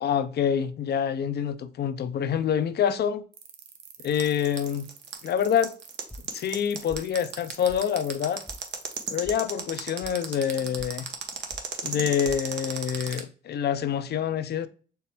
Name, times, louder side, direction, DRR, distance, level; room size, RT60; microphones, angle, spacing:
voice 1, 0.0-3.2 4.0-4.9 5.2-5.7 6.3-8.4 9.1-11.1 11.8-14.7, left 8 dB, 55° left, 0.6 m, -26 dB
sound 1, 3.3-9.2, right 9 dB, 90° right, 0.8 m, -47 dB
sound 2, 4.1-13.2, right 7 dB, 60° right, 0.9 m, -34 dB
sound 3, 6.1-6.6 6.9-7.4 7.7-7.8 8.1-8.6 8.9-9.4 9.7-10.1 10.5-10.9 11.2-11.7 11.9-12.4, equal, 5° left, 0.5 m, -44 dB
4.5 x 3.2 x 3.4 m
cardioid pair, 90°, 20 cm